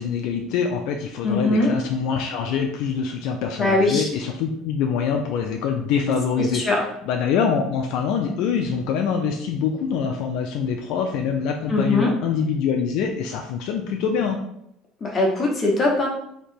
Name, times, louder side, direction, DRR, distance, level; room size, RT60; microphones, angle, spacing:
voice 1, 0.0-6.6 7.0-14.4, left 6 dB, 60° left, 3 dB, 0.4 m, -24 dB
voice 2, 1.2-1.7 3.6-4.0 6.4-6.8 11.7-12.1 15.0-16.1, left 2 dB, 20° left, -1 dB, 1.0 m, -21 dB
3.3 x 2.8 x 4.4 m, 0.75 s
cardioid pair, 150°, 0 cm